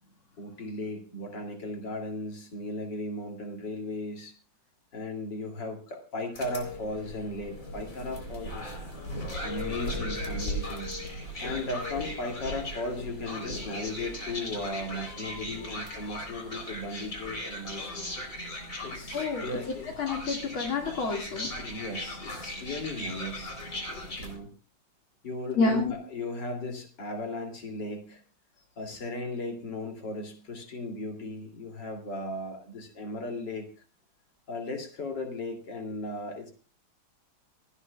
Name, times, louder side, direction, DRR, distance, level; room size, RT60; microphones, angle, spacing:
voice 1, 0.4-4.4 4.9-8.8 9.4-10.9 11.4-18.1 18.8-19.9 21.6-23.6 24.2-24.5 25.2-28.2 28.8-33.7 34.5-36.5, left 2 dB, 55° left, 3 dB, 3.4 m, -36 dB
sound 1, 6.3-24.4, left 1 dB, 35° left, 4.1 m, -37 dB
voice 2, 19.1-19.5 20.0-21.5 23.9-24.1 25.5-25.9, left 3 dB, 75° left, 1 dB, 2.9 m, -28 dB
28.5 x 9.8 x 2.3 m, 0.36 s
omnidirectional pair, 2.3 m